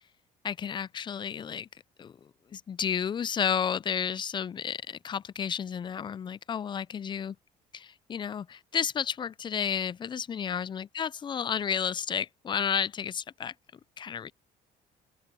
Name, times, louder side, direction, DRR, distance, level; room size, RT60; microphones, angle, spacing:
voice 1, 0.4-1.7 2.0-7.4 7.7-13.5 14.0-14.3, left 7 dB, 30° left, 0.4 m, -32 dB
open air
cardioid pair, 110°, 17 cm